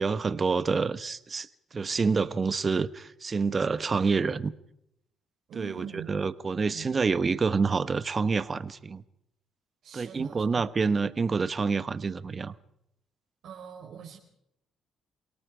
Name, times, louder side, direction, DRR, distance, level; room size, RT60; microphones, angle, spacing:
voice 1, 0.0-4.5 5.5-9.0 9.9-12.5, right 4 dB, 35° right, 14 dB, 1.2 m, -27 dB
voice 2, 5.5-6.1 6.7-6.9 9.8-10.6 13.4-14.2, right 8 dB, 70° right, -1 dB, 4.0 m, -43 dB
28.5 x 18.0 x 5.1 m, 0.78 s
cardioid pair, 80°, 0 cm